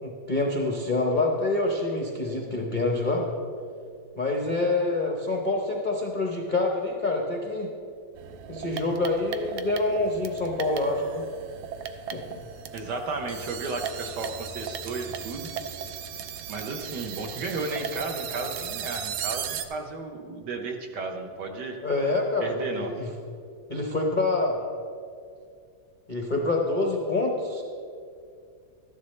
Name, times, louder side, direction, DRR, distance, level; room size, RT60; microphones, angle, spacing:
voice 1, 0.0-3.2 4.2-7.7 8.5-11.2 12.1-12.4 21.8-23.1 23.7-24.6 26.1-27.6, left 2 dB, 50° left, 0 dB, 0.5 m, -26 dB
sound 1, 8.2-19.7, right 8 dB, 80° right, 1.4 m, -36 dB
voice 2, 12.7-15.5 16.5-21.8 22.4-23.0, right 3 dB, 60° right, 3 dB, 1.3 m, -33 dB
13.0 x 11.0 x 3.2 m, 2.3 s
omnidirectional pair, 2.3 m